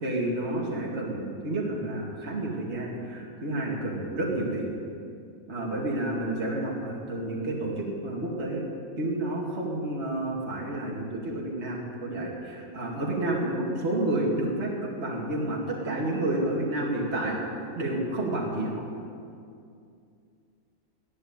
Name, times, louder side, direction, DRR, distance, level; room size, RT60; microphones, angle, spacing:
voice 1, 0.0-4.7 5.5-8.6 9.0-17.4 17.7-18.8, right 1 dB, 45° right, -3 dB, 2.6 m, -30 dB
13.0 x 11.5 x 9.6 m, 2.4 s
omnidirectional pair, 1.6 m